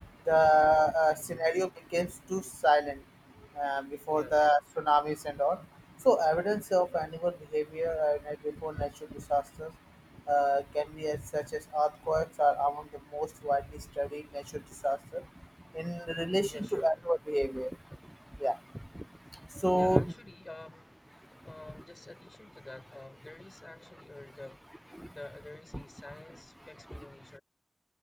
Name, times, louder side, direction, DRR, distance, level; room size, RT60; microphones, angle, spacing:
voice 1, 0.3-2.9 3.6-5.6 6.1-8.4 8.6-8.9 9.3-9.7 10.3-11.4 11.7-12.8 13.1-13.6 14.0-14.2 14.8-15.0 15.7-17.7 18.4-18.6 19.6-20.1, equal, 5° right, 0.8 m, -28 dB
voice 2, 1.0-1.5 4.1-4.5 16.5-17.0 19.7-24.6 25.1-27.4, left 2 dB, 45° left, 6.6 m, -49 dB
cardioid pair, 40°, 0 cm